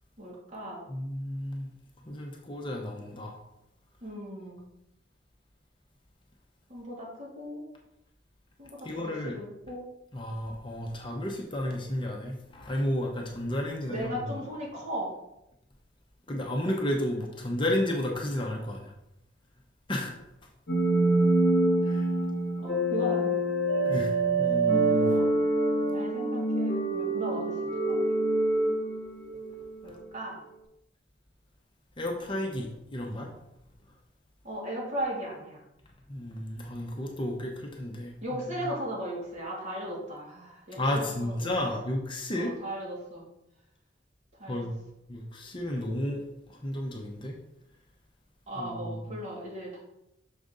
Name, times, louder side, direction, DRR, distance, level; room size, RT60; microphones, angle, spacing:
voice 1, 0.2-0.8 4.0-4.6 6.7-7.6 8.6-9.9 13.9-15.1 22.6-23.4 25.0-25.3 25.9-28.0 29.8-30.4 34.4-35.6 38.2-41.8 42.3-43.3 44.4-44.7 48.5-49.8, equal, 40° right, -5 dB, 2.3 m, -37 dB
voice 2, 0.9-1.7 2.0-3.4 8.8-9.4 10.1-14.4 16.3-18.9 19.9-20.1 21.8-22.1 23.8-25.2 32.0-33.3 36.1-38.7 40.8-42.5 44.5-44.7 45.1-46.2 46.5-47.4 48.6-49.1, left 1 dB, 25° left, 0 dB, 0.8 m, -32 dB
sound 1, 20.7-29.6, right 2 dB, 50° left, 1.1 m, -26 dB
6.3 x 5.1 x 3.8 m, 0.86 s
head